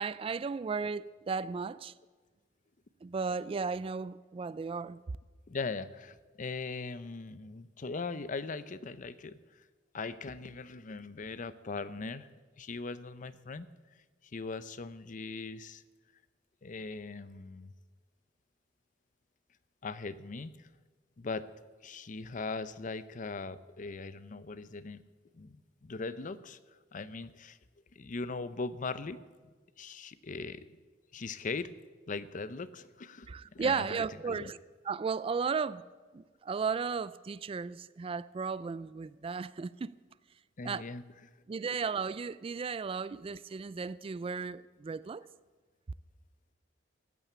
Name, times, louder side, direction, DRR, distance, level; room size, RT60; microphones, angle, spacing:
voice 1, 0.0-1.9 3.0-5.0 33.3-34.6 34.9-35.8 36.1-39.9 40.6-40.8 41.5-45.2, right 5 dB, 30° right, 0.3 m, -35 dB
voice 2, 5.5-9.4 9.9-12.3 12.6-13.7 14.3-15.8 16.6-17.7 19.8-20.7 21.2-21.5 21.8-25.0 25.3-26.6 26.9-27.6 27.9-29.2 29.8-30.6 31.1-31.7 32.1-34.0 34.2-34.5 40.6-41.0 43.1-43.2, left 4 dB, 45° left, 0.6 m, -40 dB
14.0 x 9.0 x 8.5 m
head